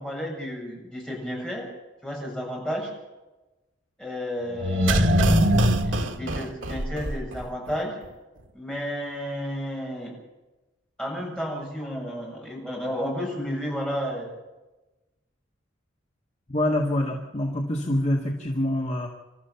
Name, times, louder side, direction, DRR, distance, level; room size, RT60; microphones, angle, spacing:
voice 1, 0.0-1.7 2.0-2.9 4.0-5.1 5.8-7.9 8.5-10.1 11.0-14.3, equal, 5° left, -3 dB, 7.4 m, -32 dB
sound 1, 4.6-7.4 7.7-7.8, equal, 80° right, 1.8 m, -22 dB
voice 2, 16.5-19.1, left 1 dB, 35° left, -1 dB, 2.0 m, -25 dB
28.0 x 13.5 x 7.2 m, 1.1 s
head